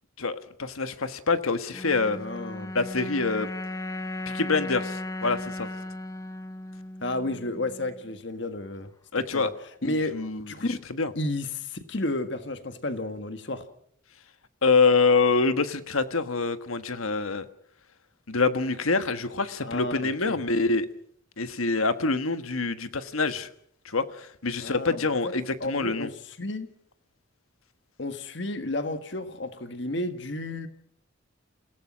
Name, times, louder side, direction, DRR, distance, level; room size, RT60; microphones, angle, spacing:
voice 1, 0.2-2.2 2.7-3.5 4.3-5.7 9.1-9.5 9.8-11.1 14.6-17.4 18.3-20.9 21.4-23.5 23.8-26.1, left 4 dB, 85° left, 1.4 m, -26 dB
sound 1, 1.7-8.1, left 1 dB, 15° left, 1.0 m, -36 dB
voice 2, 2.2-2.7 7.0-9.5 9.8-10.2 10.5-10.8 11.1-13.6 19.6-20.4 24.6-25.3 25.6-26.7 28.0-30.7, left 2 dB, 55° left, 1.6 m, -32 dB
28.0 x 17.0 x 6.2 m
head